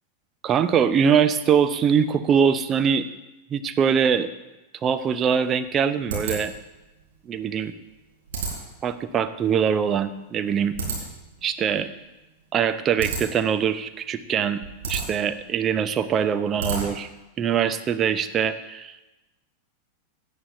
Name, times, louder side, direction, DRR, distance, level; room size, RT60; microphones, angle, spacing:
voice 1, 0.4-3.1 3.5-4.3 4.8-6.5 7.3-7.7 8.8-10.7 11.4-11.9 12.5-14.6 14.9-17.1 17.4-19.0, right 7 dB, 25° right, 10 dB, 0.6 m, -22 dB
sound 1, 5.0-17.2, right 4 dB, 55° right, 4.1 m, -35 dB
17.0 x 9.9 x 2.7 m, 1.0 s
figure-of-eight pair, 90°, 0 cm